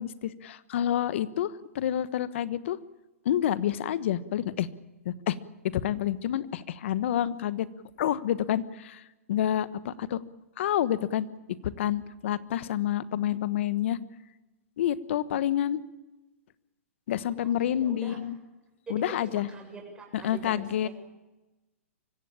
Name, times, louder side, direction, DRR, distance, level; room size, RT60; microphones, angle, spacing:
voice 1, 0.0-2.8 3.2-4.7 5.0-5.4 5.7-7.7 8.0-9.0 9.3-10.2 10.6-11.3 11.6-14.0 14.8-15.8 17.1-18.4 18.9-19.5 20.1-20.9, left 11 dB, 60° left, 16 dB, 1.2 m, -28 dB
voice 2, 17.4-18.2 18.9-20.9, right 4 dB, 10° right, 1 dB, 7.3 m, -43 dB
24.5 x 16.0 x 8.7 m, 1.1 s
hypercardioid pair, 130°, 7 cm